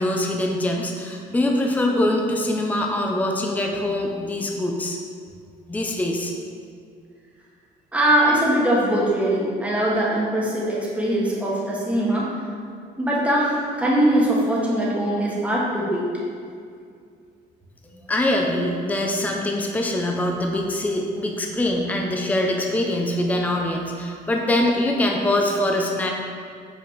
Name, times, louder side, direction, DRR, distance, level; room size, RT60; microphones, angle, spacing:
voice 1, 0.0-5.0 5.7-6.3 18.1-26.1, left 1 dB, 10° left, 1 dB, 0.6 m, -23 dB
voice 2, 7.9-12.3 13.0-16.0, right 1 dB, 10° right, -5 dB, 1.4 m, -21 dB
5.9 x 4.5 x 4.0 m, 2.3 s
cardioid pair, 110°, 17 cm